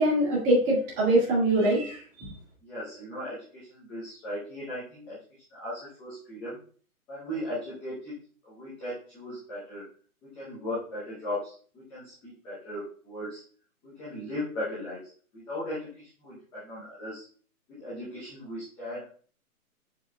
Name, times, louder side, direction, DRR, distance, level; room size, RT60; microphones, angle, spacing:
voice 1, 0.0-2.3, right 1 dB, 15° right, -3 dB, 1.8 m, -23 dB
voice 2, 2.6-5.2 5.5-6.6 7.1-8.1 8.5-9.9 10.2-13.4 13.8-15.0 15.3-17.2 17.8-19.2, left 1 dB, 5° left, -10 dB, 0.7 m, -37 dB
7.5 x 6.2 x 2.3 m, 0.43 s
hypercardioid pair, 155°, 44 cm